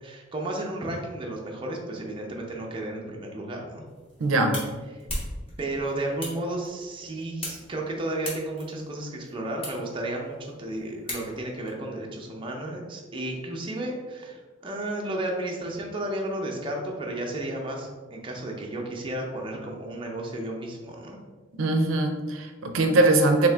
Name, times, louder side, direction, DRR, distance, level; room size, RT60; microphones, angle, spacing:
voice 1, 0.0-3.8 4.9-5.0 5.6-21.2, right 1 dB, 25° right, -1 dB, 0.5 m, -33 dB
sound 1, 3.9-11.7, left 1 dB, 30° left, 1.1 m, -40 dB
voice 2, 4.2-4.6 21.6-23.5, right 2 dB, 85° right, 5 dB, 0.5 m, -21 dB
3.6 x 2.8 x 3.3 m, 1.4 s
head